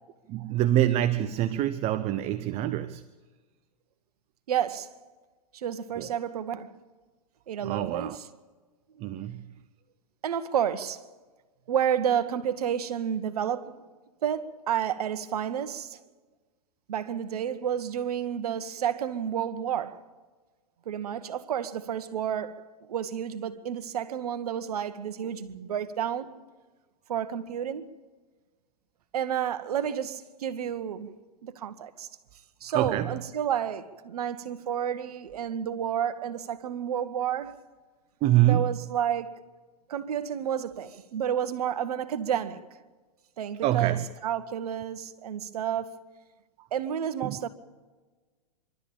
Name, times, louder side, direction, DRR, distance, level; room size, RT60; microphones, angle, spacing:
voice 1, 0.3-3.0 6.0-6.1 7.6-8.2 9.0-9.5 32.7-33.1 38.2-38.8 43.6-44.0 46.6-46.7 47.2-47.4, right 13 dB, 30° right, 0.7 m, -25 dB
voice 2, 4.5-4.9 5.5-6.7 7.5-8.2 10.2-11.0 11.7-13.8 14.2-16.0 16.9-20.0 20.8-22.6 22.9-26.3 27.1-27.9 29.1-31.1 31.4-32.1 32.6-37.5 38.4-39.4 39.9-42.6 43.4-44.0 44.2-46.0 46.7-47.5, right 9 dB, 70° right, 1.4 m, -30 dB
24.5 x 12.5 x 8.8 m
hypercardioid pair, 115°, 20 cm